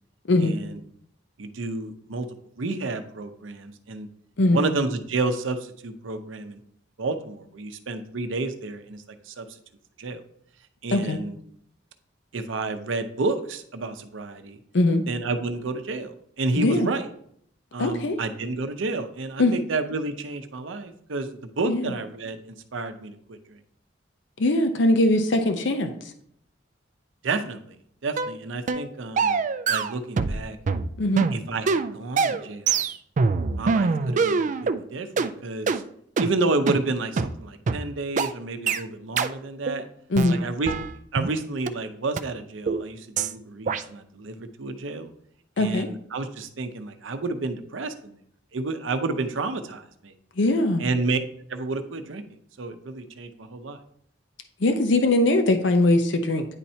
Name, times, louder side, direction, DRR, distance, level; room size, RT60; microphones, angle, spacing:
voice 1, 0.4-0.8 1.4-2.3 2.6-4.1 4.5-6.6 7.0-9.5 10.0-10.2 10.8-11.4 12.3-14.6 15.1-17.1 17.7-22.4 22.7-23.6 27.2-27.8 28.0-30.6 31.3-32.8 33.6-35.8 36.2-39.9 40.3-40.7 41.1-45.1 45.6-48.2 48.5-50.1 50.8-51.2 51.5-52.2 52.6-53.8, right 3 dB, 85° right, 8 dB, 0.7 m, -30 dB
voice 2, 16.6-16.9 17.8-18.2 19.4-19.5 21.7-21.9 24.4-25.9 31.0-31.2 40.1-40.4 45.6-45.9 50.4-50.8 54.6-56.5, left 2 dB, 70° left, 6 dB, 0.7 m, -21 dB
sound 1, 28.2-28.3 28.7-28.9 29.2-30.4 30.7-34.8 35.2-35.3 35.7-35.8 36.2-36.3 36.7-36.8 37.2-37.3 37.7-37.8 38.2-38.3 38.7-38.8 39.2-39.3 39.7-39.8 40.2-41.3 41.7-41.8 42.2-42.3 42.7-42.8 43.2-43.3 43.7-43.8, right 4 dB, 40° right, 0.3 m, -24 dB
9.8 x 4.3 x 2.8 m, 0.66 s
head